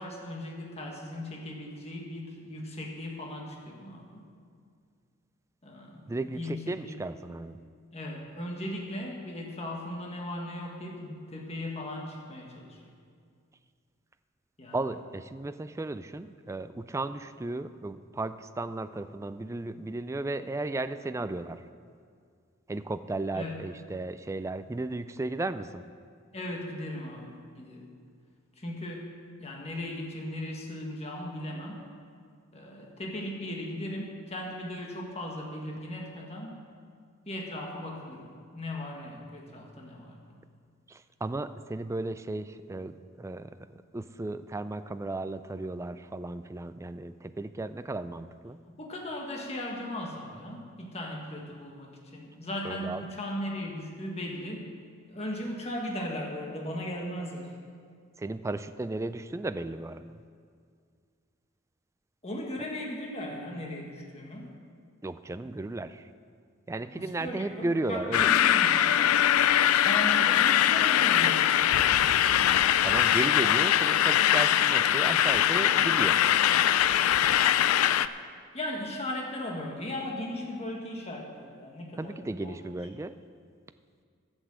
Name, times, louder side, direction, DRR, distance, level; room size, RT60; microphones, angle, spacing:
voice 1, 0.0-4.3 5.6-7.0 7.9-12.8 14.6-14.8 23.3-23.6 26.3-27.9 28.6-29.1 29.4-31.8 32.5-36.6 37.3-40.2 48.8-54.7 55.1-57.6 62.2-64.5 66.9-69.2 69.7-72.0 78.5-82.6, left 1 dB, 30° left, 0 dB, 1.5 m, -37 dB
voice 2, 6.1-7.6 14.7-21.6 22.7-25.8 40.9-43.6 43.9-48.6 52.6-53.0 58.2-60.2 65.0-66.1 66.7-68.3 72.8-76.2 82.0-83.2, right 2 dB, 15° right, 11 dB, 0.3 m, -35 dB
sound 1, 68.1-78.1, left 11 dB, 90° left, 0.4 m, -22 dB
11.5 x 8.1 x 7.5 m, 2.2 s
head